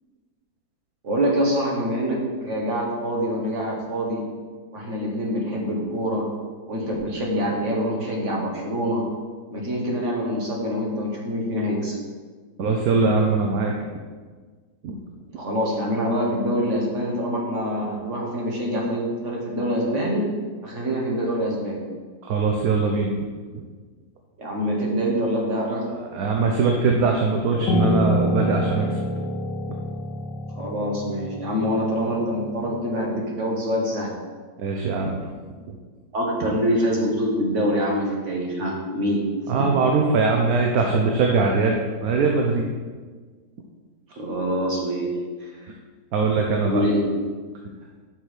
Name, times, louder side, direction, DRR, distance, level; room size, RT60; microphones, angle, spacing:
voice 1, 1.0-4.3 4.7-6.3 6.7-9.0 9.5-12.0 15.4-20.2 20.6-21.9 24.4-25.9 30.6-34.1 36.1-39.2 44.1-45.1 45.6-45.7 46.6-47.0, equal, 50° right, -2 dB, 1.7 m, -25 dB
voice 2, 12.6-13.7 14.8-15.0 22.2-23.1 23.5-23.6 26.0-29.0 34.6-35.2 35.7-35.8 39.5-42.7 46.1-46.8, right 4 dB, 70° right, 1 dB, 1.2 m, -21 dB
Piano, 27.7-33.0, equal, 85° left, 1.3 m, -27 dB
6.3 x 6.0 x 5.0 m, 1.5 s
omnidirectional pair, 1.7 m